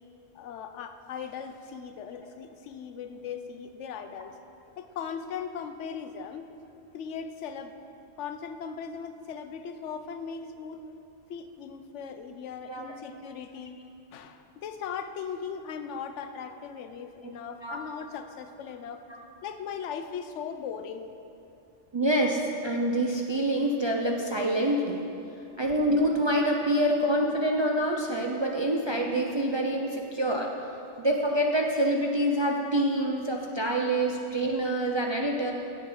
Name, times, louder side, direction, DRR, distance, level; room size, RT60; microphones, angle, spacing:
voice 1, 0.3-4.3 4.8-7.7 8.2-10.9 11.3-13.8 14.1-19.0 19.4-21.1 25.4-25.6 35.0-35.1, left 6 dB, 90° left, 9 dB, 0.9 m, -38 dB
voice 2, 21.9-25.0 25.6-30.5 31.0-35.5, right 1 dB, 40° right, 0 dB, 0.4 m, -26 dB
8.5 x 7.7 x 4.8 m, 2.7 s
omnidirectional pair, 1.2 m